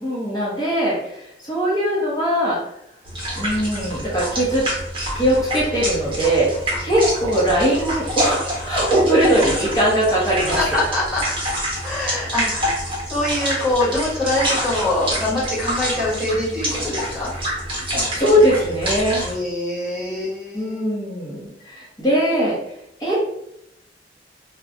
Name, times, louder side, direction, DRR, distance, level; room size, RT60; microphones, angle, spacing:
voice 1, 0.0-2.6 3.4-4.6 5.1-6.5 6.8-10.6 17.9-19.2 20.5-22.6 23.0-23.2, equal, 20° left, -9 dB, 0.8 m, -20 dB
sound 1, 3.0-19.3, equal, 30° right, 1.0 m, -27 dB
voice 2, 10.4-11.2 11.8-12.8 13.1-17.3 19.2-20.9, left 1 dB, 5° right, -7 dB, 1.1 m, -24 dB
2.4 x 2.2 x 3.7 m, 0.79 s
head